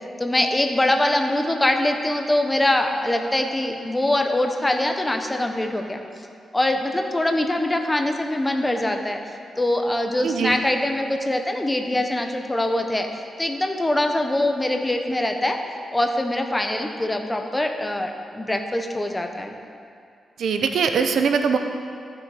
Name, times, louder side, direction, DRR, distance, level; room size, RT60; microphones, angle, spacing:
voice 1, 0.2-6.0 6.5-9.2 9.6-13.1 13.4-15.6 15.9-19.5, left 1 dB, 15° left, 4 dB, 0.9 m, -23 dB
voice 2, 10.2-10.6 20.4-21.6, right 6 dB, 80° right, 6 dB, 0.7 m, -21 dB
14.0 x 6.3 x 4.9 m, 2.4 s
cardioid pair, 90°, 0 cm